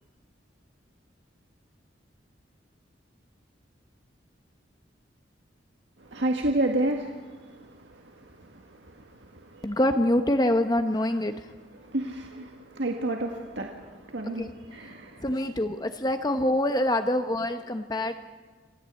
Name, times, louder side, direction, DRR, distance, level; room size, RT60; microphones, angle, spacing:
voice 1, 6.0-9.8 11.8-15.3, right 1 dB, 70° right, 2 dB, 1.9 m, -31 dB
voice 2, 9.6-11.4 14.4-14.5 15.2-18.2, left 1 dB, 20° left, 7 dB, 0.9 m, -25 dB
27.0 x 16.5 x 8.3 m, 1.4 s
head